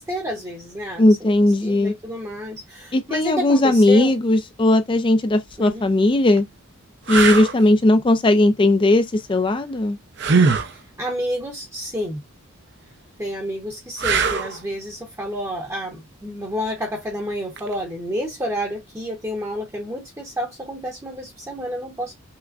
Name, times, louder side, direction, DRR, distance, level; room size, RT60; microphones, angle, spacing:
voice 1, 0.0-1.3 1.6-4.1 5.6-5.8 10.7-12.2 13.2-22.1, equal, 15° right, 0.8 m, -30 dB
voice 2, 1.0-1.9 2.9-6.5 7.1-10.0, left 1 dB, 25° left, 0.4 m, -17 dB
sound 1, 5.5-5.7 6.4-6.5 7.1-7.5 10.2-10.7 14.0-14.6 17.6-17.7, right 5 dB, 55° right, 0.6 m, -20 dB
5.7 x 2.1 x 2.4 m
head